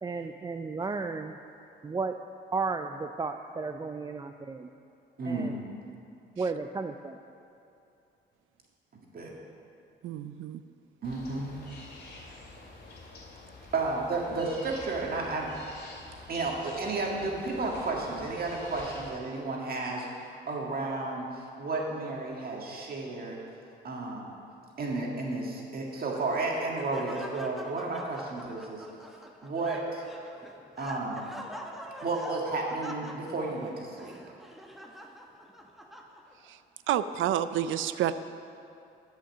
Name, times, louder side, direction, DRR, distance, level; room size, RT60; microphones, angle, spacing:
voice 1, 0.0-1.4 1.8-2.2 2.5-4.7 5.3-5.6 6.4-7.2, right 4 dB, 20° right, 7 dB, 0.4 m, -33 dB
voice 2, 5.2-5.6 9.1-9.3 11.0-11.5 13.7-15.5 16.3-20.1 20.5-21.3 21.6-23.4 23.8-24.3 24.8-28.9 29.4-30.0 30.8-31.2 32.0-34.1, right 3 dB, 50° right, -1 dB, 1.9 m, -32 dB
voice 3, 10.0-10.6 36.5-36.6 36.9-38.1, right 11 dB, 80° right, 13 dB, 0.5 m, -29 dB
sound 1, 11.0-19.1, left 2 dB, 55° left, 2.5 m, -48 dB
Laughter, 25.9-36.5, equal, ahead, 1.0 m, -45 dB
11.5 x 5.7 x 7.2 m, 2.7 s
cardioid pair, 90°, 20 cm